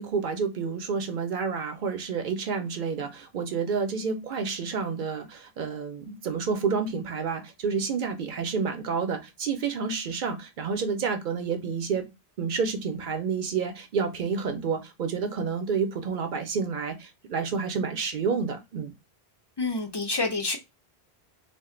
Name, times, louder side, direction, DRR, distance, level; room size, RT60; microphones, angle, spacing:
voice 1, 0.0-12.1 12.4-18.9, right 5 dB, 60° right, 0.6 m, -29 dB
voice 2, 19.6-20.6, left 3 dB, 45° left, 0.3 m, -28 dB
2.4 x 2.1 x 3.7 m
omnidirectional pair, 1.1 m